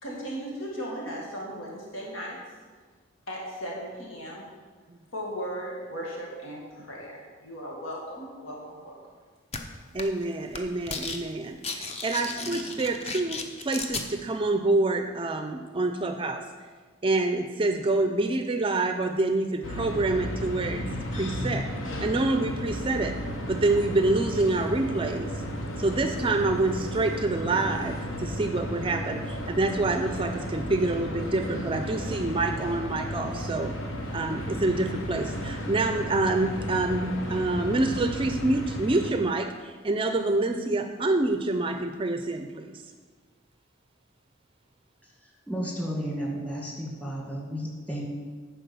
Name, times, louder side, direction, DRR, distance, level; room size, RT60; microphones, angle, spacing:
voice 1, 0.0-2.4 3.3-4.5 5.1-8.9, equal, 90° left, -3 dB, 1.9 m, -37 dB
sound 1, 9.5-9.6 10.0-10.2 10.5-11.2 11.5-14.1, left 4 dB, 30° left, 0.7 m, -34 dB
voice 2, 9.9-16.4 17.0-20.8 21.1-21.7 22.0-23.1 23.5-25.3 25.8-33.7 34.1-42.8, right 2 dB, 25° right, 6 dB, 0.4 m, -27 dB
sound 2, 19.6-39.1, equal, 70° left, 1.1 m, -34 dB
voice 3, 45.5-48.0, equal, 5° left, -3 dB, 1.8 m, -32 dB
10.0 x 4.5 x 6.8 m, 1.5 s
head